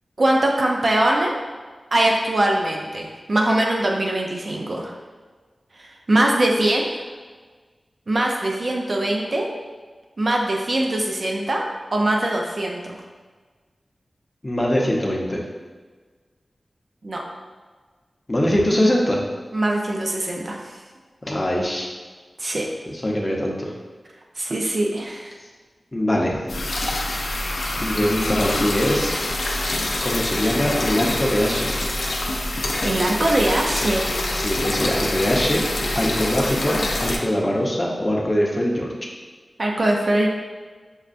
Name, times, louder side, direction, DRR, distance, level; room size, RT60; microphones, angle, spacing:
voice 1, 0.2-1.3 1.9-4.9 5.8-7.0 8.1-9.5 10.2-11.7 11.9-12.8 17.0-17.2 19.5-20.8 22.4-22.7 24.4-25.3 32.8-34.1 39.6-40.3, right 1 dB, 55° right, 0 dB, 0.4 m, -22 dB
voice 2, 14.4-15.4 18.3-19.2 21.2-21.9 22.9-23.7 25.9-26.4 27.8-29.1 30.0-31.7 34.3-35.6 35.9-38.9, equal, 30° left, -2 dB, 0.7 m, -22 dB
sound 1, 26.5-37.2, left 1 dB, 90° left, 0.4 m, -25 dB
6.2 x 2.2 x 2.5 m, 1.4 s
wide cardioid pair, 65°, 0 cm